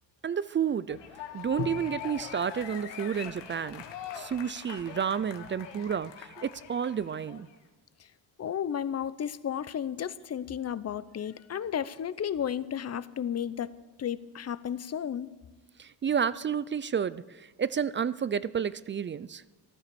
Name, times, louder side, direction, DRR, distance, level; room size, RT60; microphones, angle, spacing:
voice 1, 0.2-1.0 1.3-3.8 4.1-7.5 15.8-19.4, right 7 dB, 30° right, 18 dB, 0.4 m, -31 dB
sound 1, 0.9-7.5, left 9 dB, 90° left, 1.6 m, -42 dB
voice 2, 8.4-13.7 14.0-15.3, left 9 dB, 35° left, 17 dB, 0.7 m, -33 dB
14.5 x 12.5 x 7.0 m, 1.2 s
cardioid pair, 105°, 42 cm